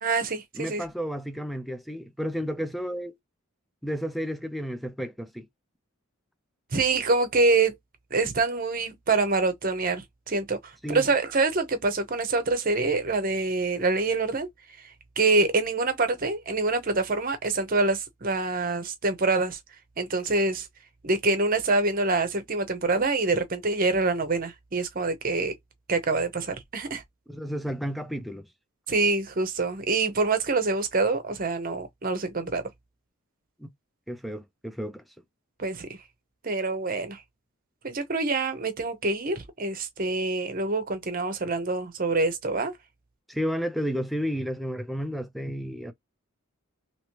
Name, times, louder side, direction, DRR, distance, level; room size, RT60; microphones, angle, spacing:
voice 1, 0.0-0.8 6.7-7.7 8.1-10.6 10.9-14.5 15.2-19.6 20.0-20.7 21.0-25.5 25.9-27.0 28.9-32.6 35.6-35.9 36.4-37.2 37.8-42.7, right 3 dB, 40° right, 0.8 m, -25 dB
voice 2, 0.5-3.2 3.8-5.5 10.8-11.1 27.3-28.5 33.6-33.7 34.1-35.0 43.3-45.9, equal, ahead, 0.4 m, -32 dB
3.0 x 2.9 x 2.9 m
head